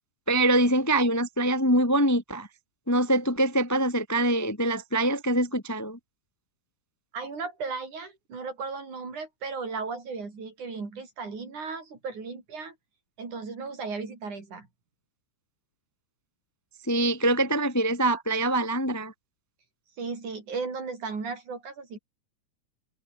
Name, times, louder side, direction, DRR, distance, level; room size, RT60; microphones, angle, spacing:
voice 1, 0.3-2.5 2.9-6.0 16.8-19.1, right 1 dB, 10° left, 1.0 m, -24 dB
voice 2, 7.1-12.8 13.2-14.7 20.0-22.0, right 4 dB, 80° right, 7.0 m, -35 dB
omnidirectional pair, 3.4 m